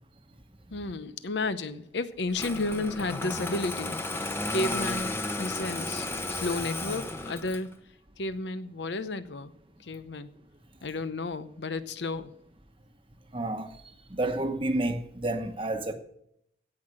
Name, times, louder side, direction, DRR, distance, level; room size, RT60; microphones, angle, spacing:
voice 1, 0.7-7.7 8.2-9.5 9.8-10.3 10.8-12.3, left 2 dB, 85° left, 0.8 m, -32 dB
Engine starting, 2.3-7.7, left 2 dB, 15° left, 0.9 m, -33 dB
voice 2, 13.3-13.7 14.1-15.9, right 2 dB, 30° right, 1.0 m, -30 dB
16.5 x 5.8 x 6.3 m
head